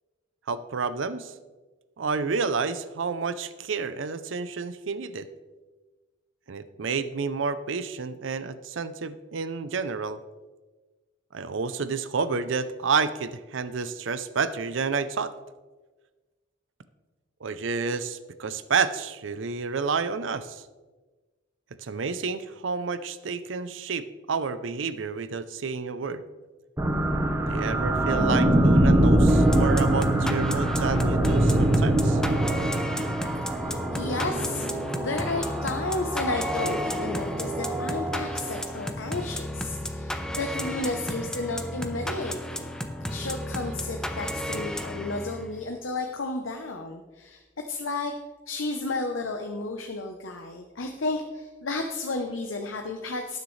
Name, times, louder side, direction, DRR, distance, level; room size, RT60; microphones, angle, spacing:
voice 1, 0.5-1.3 2.0-5.3 6.5-10.2 11.3-15.3 17.4-20.6 21.8-26.2 27.5-32.2, right 5 dB, 75° right, 13 dB, 0.6 m, -30 dB
sound 1, 26.8-38.7, right 1 dB, 15° right, 1.0 m, -24 dB
sound 2, 29.3-45.6, equal, 5° left, 0.7 m, -34 dB
voice 2, 33.5-34.7 34.9-42.7 43.1-48.1 48.5-53.4, left 2 dB, 85° left, 4 dB, 0.8 m, -32 dB
18.5 x 6.6 x 3.2 m, 1.3 s
head